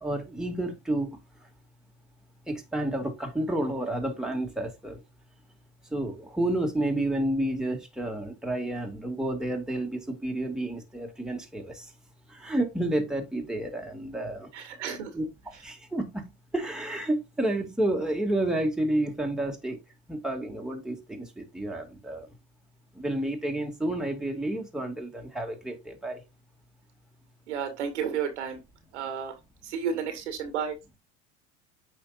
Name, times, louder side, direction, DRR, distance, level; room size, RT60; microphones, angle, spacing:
voice 1, 0.0-1.2 2.5-5.0 5.9-11.9 12.3-14.5 15.1-19.8 20.1-22.3 22.9-26.2, right 1 dB, ahead, 2.2 m, -30 dB
voice 2, 14.5-15.1 27.5-28.6 28.9-29.3 29.6-30.8, right 7 dB, 80° right, 2.0 m, -32 dB
8.6 x 5.2 x 2.5 m
hypercardioid pair, 85°, 34 cm